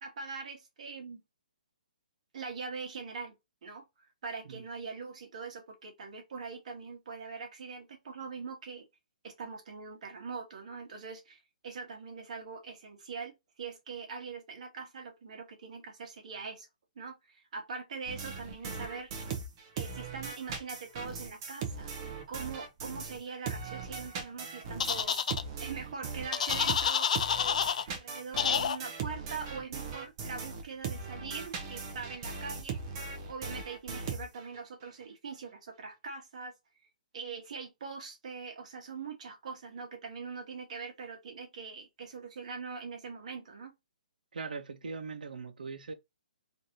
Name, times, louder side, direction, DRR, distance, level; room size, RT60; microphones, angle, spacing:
voice 1, 0.0-1.2 2.3-3.3 3.6-8.9 9.2-16.7 16.9-19.1 19.8-21.9 22.3-25.2 25.6-27.1 27.9-32.8 33.3-36.5 37.1-43.7, right 5 dB, 55° right, 1.3 m, -42 dB
sound 1, 18.1-23.2 23.5-34.6, right 5 dB, 30° right, 0.7 m, -39 dB
sound 2, 24.8-25.4 26.3-27.8 28.4-28.8, left 7 dB, 55° left, 0.4 m, -28 dB
voice 2, 44.3-45.9, right 4 dB, 85° right, 0.8 m, -40 dB
3.3 x 2.7 x 2.6 m
hypercardioid pair, 165°, 4 cm